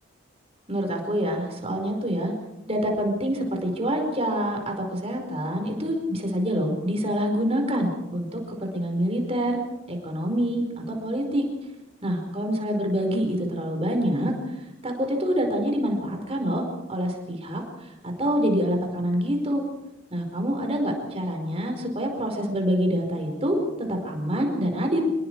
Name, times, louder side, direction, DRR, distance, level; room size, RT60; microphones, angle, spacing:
voice 1, 0.7-2.3 2.7-9.6 9.9-11.4 12.0-14.3 14.8-19.6 20.1-23.6 23.9-25.0, equal, 30° right, 2 dB, 4.9 m, -26 dB
26.0 x 21.0 x 4.8 m, 0.97 s
head